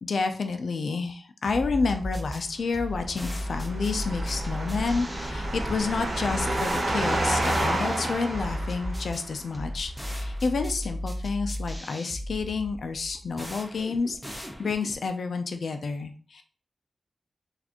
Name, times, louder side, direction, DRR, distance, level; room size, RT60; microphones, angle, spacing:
voice 1, 0.0-16.4, left 4 dB, 70° left, 7 dB, 0.4 m, -30 dB
sound 1, 1.5-15.1, equal, ahead, 0.5 m, -36 dB
sound 2, 3.0-9.3, right 1 dB, 55° right, 1.1 m, -29 dB
4.1 x 2.5 x 2.9 m, 0.41 s
wide cardioid pair, 140°, 0 cm